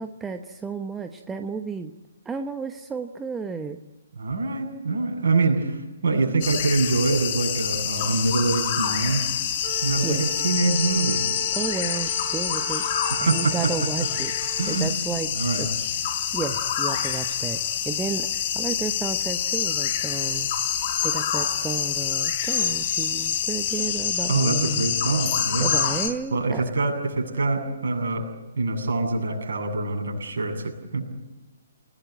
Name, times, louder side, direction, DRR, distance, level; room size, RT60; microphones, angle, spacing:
voice 1, 0.0-1.9 2.2-3.8 10.0-10.2 11.5-12.8 13.2-14.3 14.7-15.3 15.6-15.7 16.3-20.5 21.0-24.9 25.6-26.6, right 5 dB, 10° right, 7 dB, 1.0 m, -32 dB
voice 2, 4.2-9.2 9.8-11.2 13.1-13.7 14.6-14.9 15.3-15.7 24.3-25.8 26.3-31.1, right 3 dB, 55° right, 2 dB, 7.9 m, -25 dB
sound 1, 6.4-26.1, left 9 dB, 35° left, 3.8 m, -26 dB
Wind instrument woodwind instrument, 9.6-14.8, right 7 dB, 35° right, 5.0 m, -38 dB
29.0 x 18.5 x 9.4 m, 1.1 s
figure-of-eight pair, 130°, 0 cm